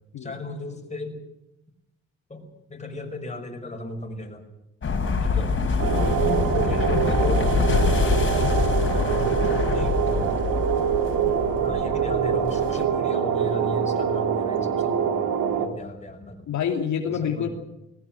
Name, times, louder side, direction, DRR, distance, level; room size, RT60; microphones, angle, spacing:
voice 1, 0.2-1.2 2.3-4.4 5.2-5.6 5.9-10.5 11.5-16.5 17.1-17.5, left 2 dB, 25° left, 3 dB, 5.9 m, -36 dB
sound 1, 4.8-12.8, left 4 dB, 40° left, 4.8 m, -25 dB
sound 2, 5.8-15.7, right 8 dB, 80° right, 3.1 m, -24 dB
voice 2, 16.5-17.5, left 8 dB, 70° left, 2 dB, 2.8 m, -28 dB
20.0 x 18.0 x 9.1 m, 0.88 s
cardioid pair, 90°, 30 cm